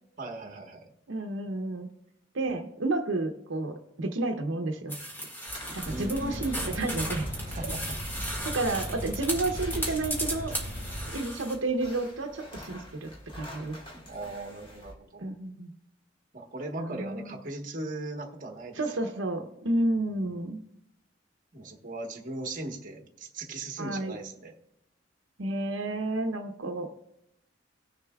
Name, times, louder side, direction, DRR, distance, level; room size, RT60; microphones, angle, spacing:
voice 1, 0.2-0.9 5.8-6.5 7.5-8.5 13.9-15.3 16.3-18.8 19.7-20.2 21.5-24.5, right 2 dB, 45° right, 2 dB, 1.3 m, -39 dB
voice 2, 1.1-1.9 2.3-5.0 5.8-7.3 8.4-10.5 11.1-13.8 15.2-15.7 16.8-17.4 18.8-20.6 23.8-24.1 25.4-26.9, right 2 dB, 85° right, 4 dB, 0.7 m, -31 dB
sound 1, 4.9-11.5, equal, 10° left, 1.8 m, -36 dB
sound 2, 5.5-14.9, equal, 30° left, 1.7 m, -48 dB
sound 3, 5.8-11.1, equal, 85° left, 3.0 m, -38 dB
18.0 x 6.7 x 2.3 m, 0.79 s
head